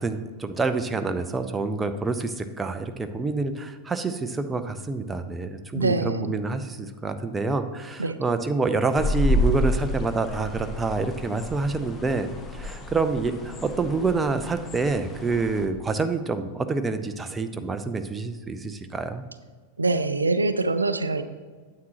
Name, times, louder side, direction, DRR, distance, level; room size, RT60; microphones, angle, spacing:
voice 1, 0.0-19.2, right 3 dB, 15° right, 8 dB, 0.6 m, -27 dB
voice 2, 5.7-6.3 8.0-8.2 19.8-21.2, right 3 dB, 80° right, 11 dB, 0.4 m, -24 dB
sound 1, 9.0-15.7, equal, 20° left, 0.9 m, -29 dB
9.3 x 7.8 x 2.9 m, 1.4 s
figure-of-eight pair, 90°, 0 cm